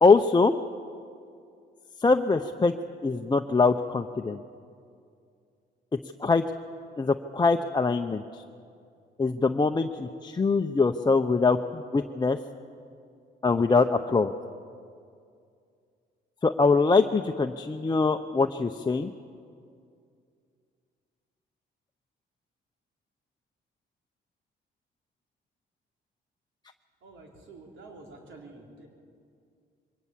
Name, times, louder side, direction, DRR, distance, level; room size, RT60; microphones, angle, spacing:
voice 1, 0.0-0.5 2.0-2.7 3.0-4.4 6.2-6.4 7.0-8.2 9.2-12.4 13.4-14.3 16.4-19.1, left 4 dB, 20° left, 5 dB, 0.7 m, -23 dB
voice 2, 27.0-28.9, right 3 dB, 75° right, 1 dB, 4.0 m, -48 dB
22.0 x 18.0 x 7.4 m, 2.3 s
cardioid pair, 90°, 20 cm